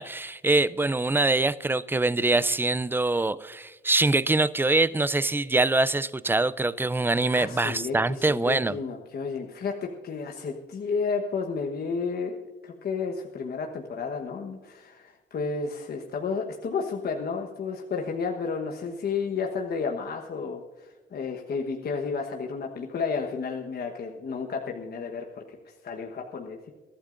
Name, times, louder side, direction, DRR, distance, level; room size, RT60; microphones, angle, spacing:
voice 1, 0.0-8.8, right 2 dB, 10° right, 16 dB, 0.4 m, -24 dB
voice 2, 7.3-9.7 10.0-12.4 12.6-26.7, left 5 dB, 50° left, 2 dB, 1.2 m, -32 dB
22.0 x 12.5 x 2.6 m, 1.3 s
cardioid pair, 90°, 20 cm